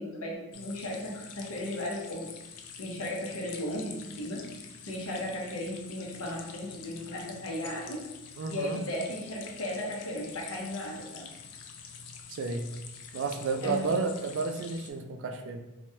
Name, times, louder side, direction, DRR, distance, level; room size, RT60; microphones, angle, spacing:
voice 1, 0.0-2.4 2.8-8.1 8.5-11.3 13.6-13.9, left 1 dB, 70° left, -1 dB, 0.7 m, -36 dB
sound 1, 0.5-14.9, left 6 dB, 90° left, 0.4 m, -47 dB
voice 2, 8.4-8.8 12.3-12.7 13.1-15.6, right 4 dB, 55° right, 5 dB, 0.3 m, -32 dB
3.0 x 2.2 x 2.7 m, 0.93 s
head